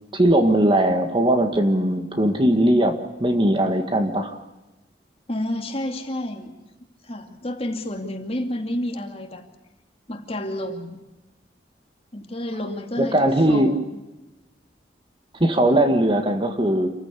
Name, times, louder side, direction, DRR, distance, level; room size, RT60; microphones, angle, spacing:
voice 1, 0.1-4.4 13.0-13.7 15.4-16.9, right 1 dB, 30° right, 7 dB, 1.8 m, -19 dB
voice 2, 5.3-6.5 7.0-9.5 10.1-11.0 12.1-14.0, left 1 dB, 35° left, 5 dB, 2.5 m, -30 dB
28.0 x 15.0 x 8.4 m, 1.1 s
head